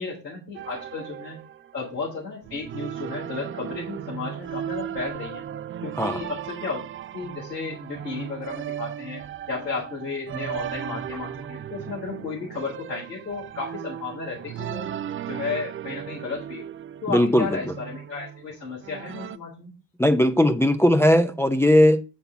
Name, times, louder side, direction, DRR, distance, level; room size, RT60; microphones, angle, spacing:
voice 1, 0.0-1.4 1.7-5.4 5.8-6.8 7.1-14.9 15.3-16.7 17.0-19.7, left 4 dB, 90° left, 1.7 m, -33 dB
sound 1, 0.5-2.1 2.4-19.4, right 10 dB, 25° right, 0.4 m, -36 dB
voice 2, 17.1-17.5 20.0-22.0, left 1 dB, 5° left, 0.7 m, -18 dB
7.9 x 4.2 x 5.7 m
figure-of-eight pair, 45°, 48 cm